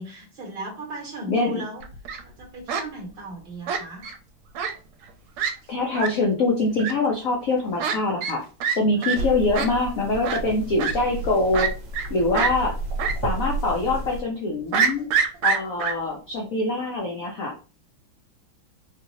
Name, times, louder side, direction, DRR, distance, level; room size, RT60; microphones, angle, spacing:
voice 1, 0.0-1.9 2.2-4.1 9.0-9.1, right 2 dB, 30° right, -2 dB, 1.6 m, -37 dB
voice 2, 1.3-1.6 5.7-8.4 8.7-11.7 12.1-12.7 13.2-15.1 15.4-17.5, left 2 dB, 75° left, 0 dB, 0.7 m, -24 dB
Fowl, 1.8-2.2 2.7-2.8 3.7-4.2 4.6-4.7 5.0-5.1 5.4-5.5 5.9-6.1 6.8-6.9 7.8-8.0 8.2-8.4 8.6-8.8 9.0-9.2 9.5-9.7 10.2-10.4 10.8-10.9 11.5-12.1 12.3-12.5 13.0-13.1 13.5-13.6 14.7-15.9, right 6 dB, 85° right, 1.5 m, -24 dB
sound 1, 9.1-14.2, right 1 dB, 70° right, 1.5 m, -31 dB
4.0 x 2.9 x 2.7 m, 0.35 s
omnidirectional pair, 2.4 m